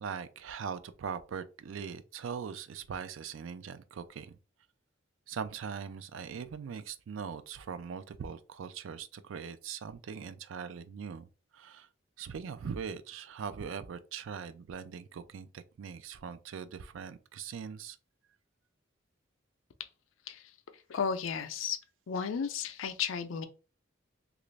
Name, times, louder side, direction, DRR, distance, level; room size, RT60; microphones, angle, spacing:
voice 1, 0.0-4.4 5.3-11.3 11.5-11.9 12.2-18.0, right 6 dB, 80° right, 0.4 m, -41 dB
voice 2, 20.9-21.8 22.1-23.5, left 6 dB, 85° left, 0.4 m, -33 dB
3.0 x 2.5 x 3.2 m
head